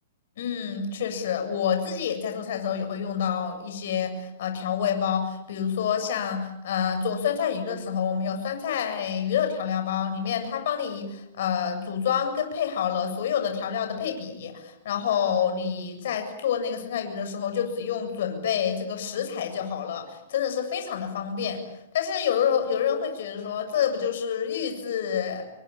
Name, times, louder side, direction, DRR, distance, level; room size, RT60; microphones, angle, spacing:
voice 1, 0.4-21.6 21.9-25.4, left 8 dB, 65° left, 6 dB, 7.4 m, -28 dB
28.0 x 24.0 x 8.7 m, 0.81 s
hypercardioid pair, 155°, 0 cm